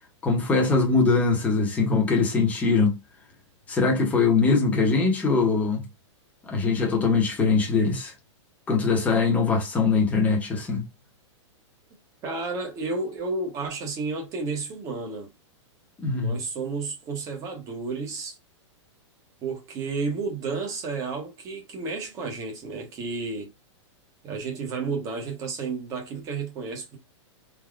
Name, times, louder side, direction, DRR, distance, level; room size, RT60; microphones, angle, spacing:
voice 1, 0.2-3.0 3.7-5.8 6.5-8.1 8.7-10.8 16.0-16.4, left 4 dB, 10° left, 0.8 m, -22 dB
voice 2, 12.2-15.3 16.1-18.4 19.4-23.5 24.2-27.0, right 4 dB, 20° right, 0.9 m, -32 dB
3.4 x 2.2 x 2.4 m
hypercardioid pair, 165°, 16 cm